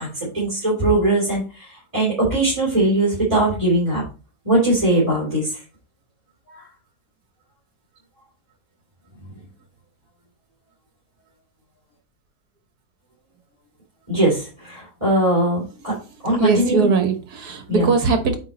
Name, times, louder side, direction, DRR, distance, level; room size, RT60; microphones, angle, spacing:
voice 1, 0.0-4.0 4.4-5.6 6.5-6.6 14.1-15.9 16.2-16.9 17.7-17.9, right 1 dB, 20° right, -7 dB, 3.4 m, -20 dB
voice 2, 16.2-18.4, right 4 dB, 75° right, 7 dB, 1.8 m, -21 dB
9.0 x 3.7 x 4.1 m, 0.35 s
omnidirectional pair, 1.7 m